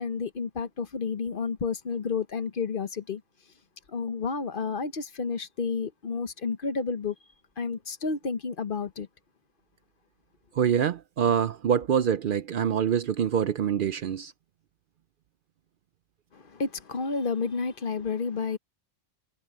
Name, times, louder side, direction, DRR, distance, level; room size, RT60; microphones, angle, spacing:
voice 1, 0.0-3.2 3.9-7.1 7.6-9.1 16.3-18.6, left 5 dB, 50° left, 1.1 m, -31 dB
voice 2, 10.6-14.3, right 8 dB, 60° right, 0.6 m, -25 dB
omnidirectional pair, 1.1 m